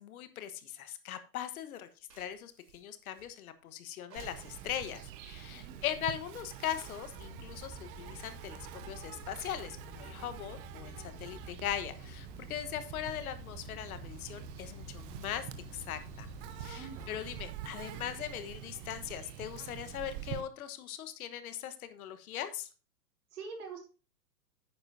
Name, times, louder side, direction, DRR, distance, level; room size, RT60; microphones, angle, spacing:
voice 1, 0.0-1.9 2.2-15.5 15.7-16.3 16.6-22.7, left 10 dB, 55° left, 11 dB, 1.3 m, -40 dB
sound 1, 1.5-3.6 4.1-5.4 6.0-7.2 7.5-7.6 7.9-8.0 8.2-12.1, right 5 dB, 80° right, 3.2 m, -62 dB
Insect, 4.2-20.4, right 12 dB, 30° right, 0.9 m, -46 dB
voice 2, 5.5-5.8 16.4-17.2 23.3-23.9, right 5 dB, 60° right, 2 dB, 3.6 m, -46 dB
sound 2, 7.1-17.5, left 4 dB, 15° left, 3.0 m, -51 dB
10.5 x 9.0 x 2.7 m, 0.34 s
hypercardioid pair, 115°, 50 cm